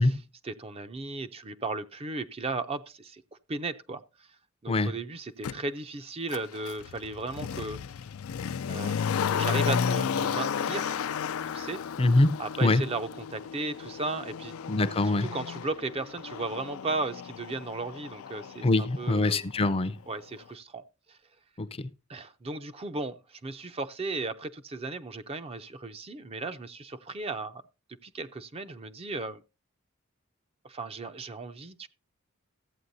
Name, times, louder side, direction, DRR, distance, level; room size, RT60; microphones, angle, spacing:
voice 1, 0.0-3.2 3.5-4.3 4.6-7.8 8.7-11.0 11.5-11.8 12.4-14.5 15.0-19.5 20.1-21.2 22.1-27.6 28.0-29.4 30.6-31.9, right 3 dB, 30° right, 0.5 m, -36 dB
Motor vehicle (road), 5.4-5.5 6.3-19.2 19.5-19.6, left 7 dB, 85° left, 0.4 m, -33 dB
voice 2, 12.0-12.8 14.7-15.3 18.6-20.0 21.6-21.7, left 2 dB, 30° left, 0.5 m, -24 dB
14.5 x 8.6 x 2.7 m
head